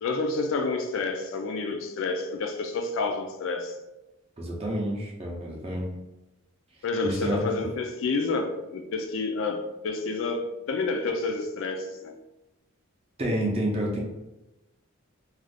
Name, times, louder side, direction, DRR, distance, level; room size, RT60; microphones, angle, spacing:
voice 1, 0.0-3.7 6.8-12.1, left 3 dB, 60° left, 0.4 m, -29 dB
voice 2, 4.4-5.9 7.0-7.6 13.2-14.0, equal, 30° right, 0.6 m, -29 dB
2.4 x 2.4 x 3.3 m
head